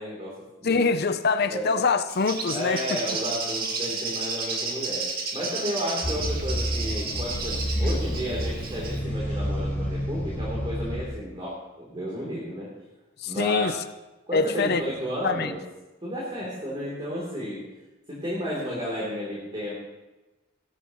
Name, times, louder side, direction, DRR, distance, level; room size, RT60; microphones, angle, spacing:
voice 1, 0.0-0.8 1.5-1.7 2.5-5.0 5.3-12.7 13.3-13.7 14.3-15.6 16.0-17.6 18.1-19.7, equal, 30° right, -6 dB, 3.3 m, -32 dB
voice 2, 0.6-3.0 7.8-8.0 13.2-13.8 14.3-14.8 15.2-15.5, left 4 dB, 55° left, 9 dB, 0.7 m, -24 dB
Bird, 2.1-9.0, right 4 dB, 50° right, 2.0 m, -32 dB
sound 1, 6.0-11.0, equal, 10° left, 2.5 m, -29 dB
17.0 x 12.5 x 3.1 m, 1.1 s
head